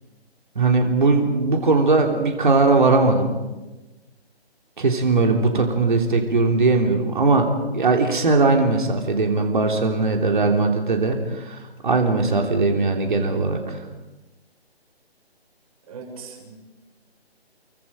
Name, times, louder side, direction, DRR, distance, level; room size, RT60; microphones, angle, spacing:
voice 1, 0.5-3.3 4.8-13.8, right 3 dB, 50° right, 3 dB, 3.3 m, -19 dB
voice 2, 15.9-16.5, right 5 dB, 35° right, 1 dB, 6.8 m, -39 dB
30.0 x 23.5 x 5.2 m, 1.1 s
figure-of-eight pair, 145°, 32 cm